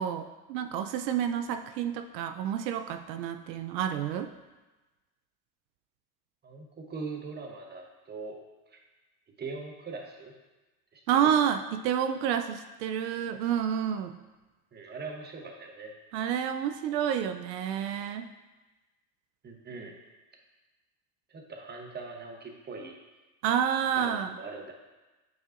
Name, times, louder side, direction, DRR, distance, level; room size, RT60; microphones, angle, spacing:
voice 1, 0.0-4.3 11.1-14.2 16.1-18.3 23.4-24.3, right 9 dB, 80° right, 8 dB, 0.6 m, -29 dB
voice 2, 6.4-8.4 8.7-8.8 9.4-10.3 10.9-11.3 14.7-16.0 19.4-20.0 21.3-23.0 24.0-24.7, right 4 dB, 20° right, 2 dB, 0.9 m, -41 dB
9.3 x 4.6 x 2.5 m, 1.1 s
supercardioid pair, 105°, 49 cm